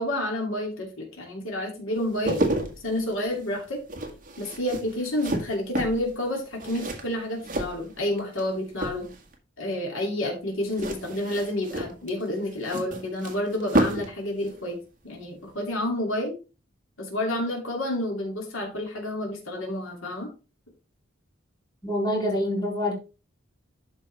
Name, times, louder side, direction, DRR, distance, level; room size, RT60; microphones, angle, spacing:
voice 1, 0.0-2.4 2.8-3.8 4.4-9.1 9.6-14.8 15.0-16.3 17.0-20.3, left 1 dB, 80° left, 2.8 m, -29 dB
sound 1, 2.0-8.4 8.7-9.4 10.7-14.2 14.4-14.6, right 1 dB, 40° right, 1.8 m, -31 dB
voice 2, 21.8-22.9, left 1 dB, 20° left, 3.4 m, -26 dB
12.0 x 5.4 x 3.4 m
head